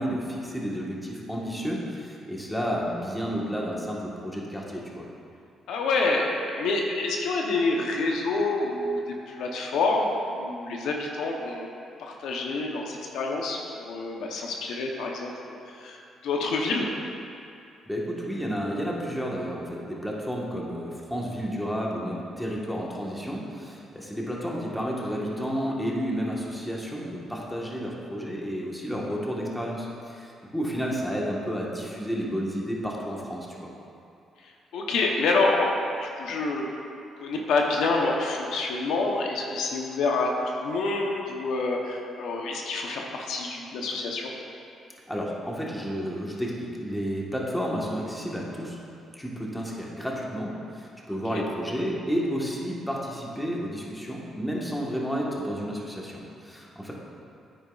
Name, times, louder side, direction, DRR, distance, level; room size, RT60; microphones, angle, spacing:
voice 1, 0.0-5.0 17.8-33.7 45.1-48.8 49.1-56.9, equal, 5° left, -3 dB, 1.3 m, -31 dB
voice 2, 5.7-9.0 9.3-11.7 12.0-16.9 34.7-35.7 36.0-36.7 37.2-40.3 40.6-44.3 51.3-51.4, left 3 dB, 80° left, 0 dB, 0.8 m, -27 dB
9.0 x 8.9 x 2.4 m, 2.6 s
cardioid pair, 90°, 0 cm